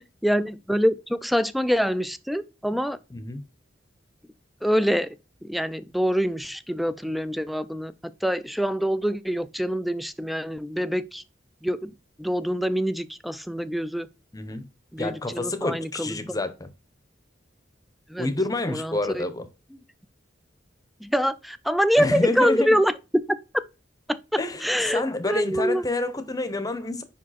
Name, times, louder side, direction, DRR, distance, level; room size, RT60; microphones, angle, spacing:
voice 1, 0.2-3.0 4.6-5.1 5.4-11.2 11.6-11.9 12.2-14.1 14.9-16.4 18.1-18.3 18.7-19.2 19.7-19.8 21.0-22.9 23.3-23.4 24.1-24.2 24.6-25.8, equal, ahead, 0.3 m, -25 dB
voice 2, 3.1-3.4 14.3-14.7 15.0-16.7 18.2-19.5 22.0-22.8 24.4-24.7 24.9-27.0, left 2 dB, 20° left, 0.8 m, -28 dB
5.4 x 4.9 x 4.1 m
head